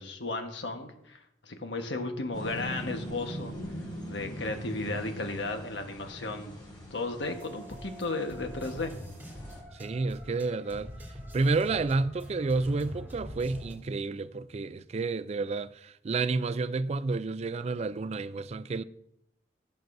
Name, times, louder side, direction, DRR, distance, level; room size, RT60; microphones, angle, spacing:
voice 1, 0.0-3.5 4.1-6.6 6.9-8.9, left 2 dB, 75° left, 1.3 m, -34 dB
sound 1, 2.3-9.6, equal, 25° left, 3.5 m, -42 dB
sound 2, 7.2-13.7, equal, 10° right, 3.9 m, -44 dB
voice 2, 9.7-10.9 11.3-18.8, right 3 dB, 35° right, 0.4 m, -30 dB
16.0 x 7.8 x 2.7 m
head